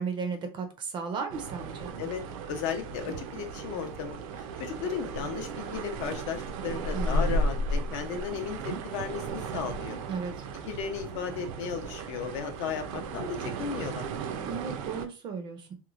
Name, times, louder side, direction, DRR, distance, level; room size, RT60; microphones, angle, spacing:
voice 1, 0.0-1.9 6.9-7.5 10.1-10.3 14.5-15.7, right 5 dB, 25° right, 0.4 m, -35 dB
sound 1, 1.3-15.1, right 2 dB, 80° right, 0.5 m, -34 dB
voice 2, 2.5-10.0 10.7-14.1, left 7 dB, 60° left, 0.6 m, -35 dB
3.0 x 2.1 x 2.4 m
cardioid pair, 170°, 17 cm